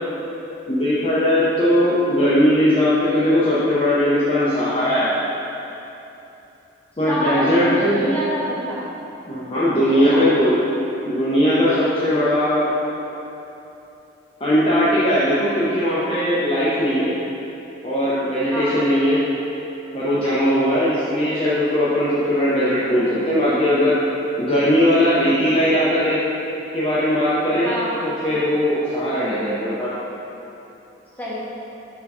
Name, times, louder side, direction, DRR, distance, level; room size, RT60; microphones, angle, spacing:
voice 1, 0.7-5.1 7.0-8.0 9.3-10.6 11.0-12.7 14.4-17.1 17.8-19.2 19.9-24.0 24.4-26.2 26.7-27.7 28.0-29.9, equal, 30° left, -11 dB, 0.7 m, -19 dB
voice 2, 7.1-8.8 9.8-10.3 18.5-18.7 27.6-27.9 31.2-31.3, equal, 10° left, -10 dB, 1.2 m, -26 dB
4.8 x 3.9 x 5.3 m, 2.9 s
head